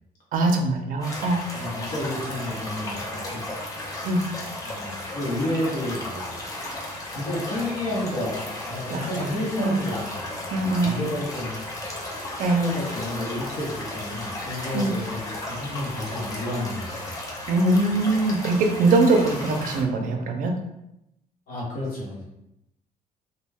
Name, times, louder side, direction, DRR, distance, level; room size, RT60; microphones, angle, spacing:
voice 1, 0.3-1.4 4.0-4.3 8.9-9.1 9.6-9.8 10.5-10.9 12.4-12.7 14.7-14.9 17.5-20.5, right 2 dB, 60° right, 4 dB, 0.4 m, -22 dB
sound 1, 1.0-19.8, left 1 dB, 20° left, 0.4 m, -34 dB
voice 2, 1.5-3.5 4.6-6.4 7.1-11.6 12.5-17.1 21.5-22.2, left 1 dB, 75° left, -5 dB, 0.9 m, -31 dB
2.3 x 2.2 x 3.3 m, 0.86 s
cardioid pair, 180°, 16 cm